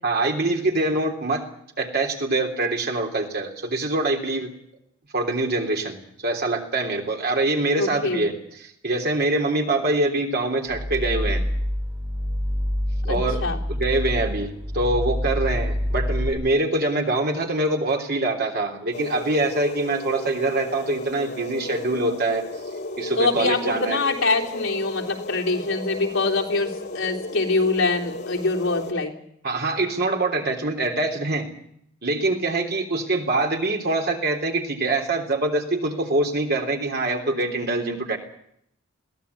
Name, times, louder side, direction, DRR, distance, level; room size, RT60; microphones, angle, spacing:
voice 1, 0.0-1.4 1.8-4.5 5.1-11.4 13.0-13.4 13.7-22.4 23.0-24.0 29.4-31.5 32.0-38.2, right 2 dB, 50° right, 3 dB, 3.4 m, -24 dB
voice 2, 7.8-8.2 13.1-13.6 23.2-29.1, left 3 dB, 75° left, -1 dB, 3.5 m, -24 dB
sound 1, 10.7-16.3, equal, 25° right, 4.9 m, -26 dB
sound 2, 18.9-28.9, left 1 dB, 50° left, 2.2 m, -34 dB
22.5 x 17.0 x 8.5 m, 0.73 s
head